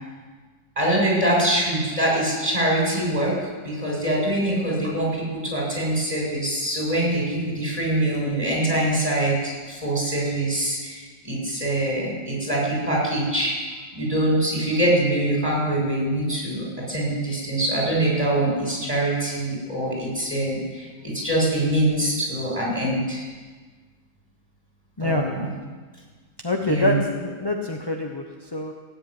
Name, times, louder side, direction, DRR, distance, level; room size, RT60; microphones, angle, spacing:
voice 1, 0.8-13.5 13.9-23.2 25.0-25.5 26.7-27.0, right 1 dB, 15° right, -3 dB, 6.6 m, -24 dB
voice 2, 25.0-25.3 26.4-28.7, left 2 dB, 20° left, 1 dB, 0.7 m, -25 dB
17.0 x 8.3 x 9.7 m, 1.4 s
omnidirectional pair, 2.0 m